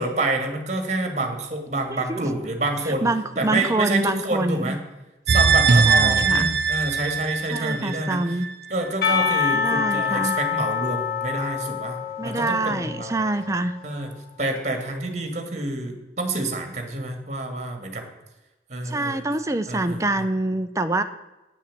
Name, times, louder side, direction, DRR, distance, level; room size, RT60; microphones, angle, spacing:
voice 1, 0.0-3.1 3.4-4.8 5.3-8.4 8.7-12.0 12.2-13.2 13.8-18.1 18.7-19.2 19.7-20.0, right 2 dB, 40° right, 5 dB, 1.8 m, -28 dB
voice 2, 1.9-2.3 3.0-4.8 5.8-6.5 7.5-8.5 9.5-10.4 12.2-13.7 18.8-21.0, right 2 dB, 15° right, 8 dB, 0.6 m, -25 dB
sound 1, 5.3-8.5 8.8-8.9, right 4 dB, 65° right, 0.6 m, -20 dB
Percussion, 9.0-13.9, left 6 dB, 55° left, 1.3 m, -26 dB
9.1 x 7.3 x 7.4 m, 1.0 s
head